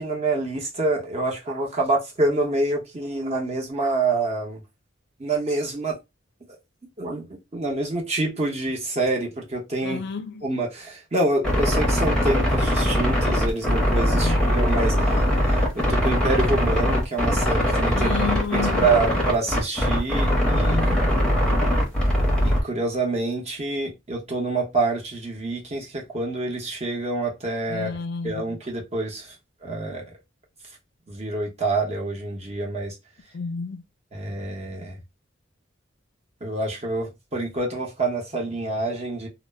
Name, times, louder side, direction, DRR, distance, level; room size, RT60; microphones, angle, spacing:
voice 1, 0.0-4.6 5.2-6.0 7.0-10.0 10.4-18.1 18.5-20.8 22.4-27.9 28.2-29.4 29.6-30.0 31.1-33.0 34.1-35.0 36.4-39.3, right 2 dB, 35° right, 0.8 m, -27 dB
voice 2, 9.8-10.5 14.1-14.6 17.9-18.9 20.6-21.1 27.7-28.4 33.3-33.8, left 5 dB, 60° left, 0.4 m, -31 dB
sound 1, 11.4-22.6, equal, 5° left, 0.7 m, -21 dB
2.0 x 2.0 x 3.2 m
head